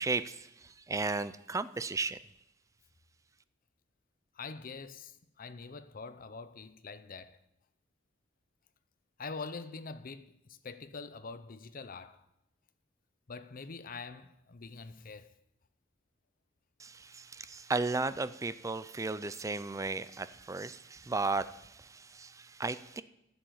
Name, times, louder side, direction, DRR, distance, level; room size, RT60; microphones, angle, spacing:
voice 1, 0.0-2.2 16.8-23.0, right 3 dB, 15° right, 0.4 m, -35 dB
voice 2, 4.3-7.4 9.2-12.2 13.3-15.3, left 4 dB, 45° left, 0.7 m, -44 dB
11.0 x 7.1 x 7.7 m
head